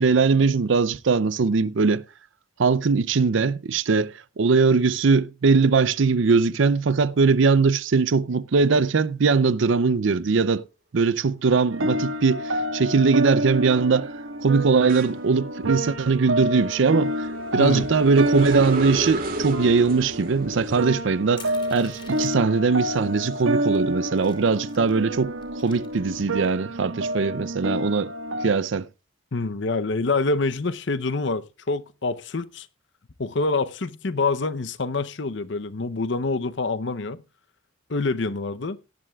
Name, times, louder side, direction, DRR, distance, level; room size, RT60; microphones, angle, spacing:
voice 1, 0.0-2.0 2.6-10.6 10.9-14.1 14.4-17.3 17.5-28.1 28.4-28.9, right 4 dB, 65° right, 0.5 m, -21 dB
sound 1, 11.7-28.5, right 1 dB, 85° right, 1.5 m, -29 dB
sound 2, 12.0-12.4 12.8-24.0 24.4-26.1, right 1 dB, 45° right, 2.5 m, -36 dB
Crushing, 21.4-22.6 23.3-23.4 23.7-25.0 25.4-26.5, left 5 dB, 25° left, 3.0 m, -47 dB
voice 2, 29.3-32.7 33.2-37.2 37.9-38.8, left 3 dB, 60° left, 0.7 m, -26 dB
17.5 x 11.0 x 2.3 m
head